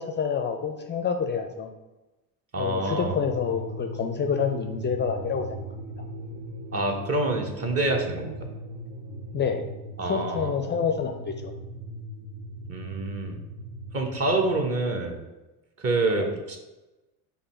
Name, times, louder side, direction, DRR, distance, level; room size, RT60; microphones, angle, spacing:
voice 1, 0.0-1.7 2.6-5.6 9.3-9.6 10.0-11.5 16.2-16.3, left 6 dB, 25° left, 6 dB, 0.4 m, -28 dB
voice 2, 2.5-3.2 6.7-8.5 10.0-10.5 12.7-13.4 13.9-15.2 15.8-16.6, right 2 dB, 35° right, 3 dB, 0.9 m, -27 dB
sound 1, 2.9-14.6, right 1 dB, 70° right, 0.7 m, -39 dB
5.3 x 2.3 x 4.3 m, 1.1 s
hypercardioid pair, 70°, 43 cm